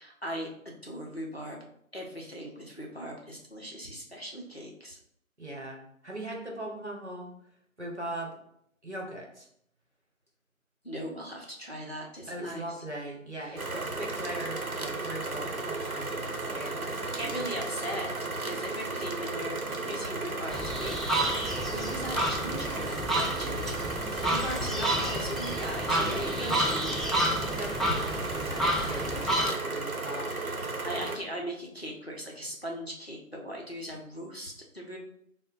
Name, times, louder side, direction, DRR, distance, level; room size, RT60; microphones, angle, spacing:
voice 1, 0.0-1.6 1.9-5.0 10.8-12.8 13.4-13.6 16.8-18.1 18.4-27.2 28.7-29.1 30.4-30.5 30.8-35.0, equal, 45° left, -1 dB, 0.6 m, -39 dB
voice 2, 5.4-7.3 7.8-8.3 8.8-9.5 12.3-17.6 25.9-26.6 27.4-30.7, right 1 dB, 55° right, 0 dB, 0.9 m, -39 dB
sound 1, 13.6-31.2, right 2 dB, 85° right, 0.7 m, -34 dB
sound 2, 20.5-29.5, right 1 dB, ahead, 0.4 m, -30 dB
3.5 x 2.1 x 3.7 m, 0.71 s
figure-of-eight pair, 175°, 42 cm